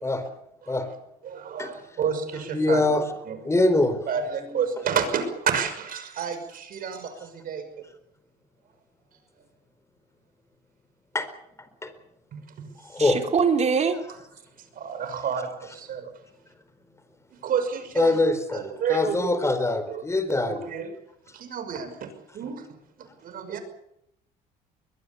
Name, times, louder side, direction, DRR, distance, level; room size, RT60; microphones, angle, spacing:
voice 1, 1.2-2.9 3.3-3.5 4.1-7.6 12.3-12.7 14.1-14.2 14.7-16.1 17.4-18.2 18.5-19.4 19.9-20.0 20.3-20.9 21.3-22.7 23.0-23.6, right 7 dB, 55° right, 9 dB, 5.9 m, -30 dB
voice 2, 2.5-3.1 3.4-4.0 11.1-11.3 11.8-11.9 12.8-13.2 18.0-20.7, left 2 dB, 15° left, 10 dB, 4.4 m, -23 dB
voice 3, 13.0-14.0, right 6 dB, 40° right, 5 dB, 4.1 m, -22 dB
22.5 x 21.5 x 7.1 m, 0.77 s
cardioid pair, 110°, 17 cm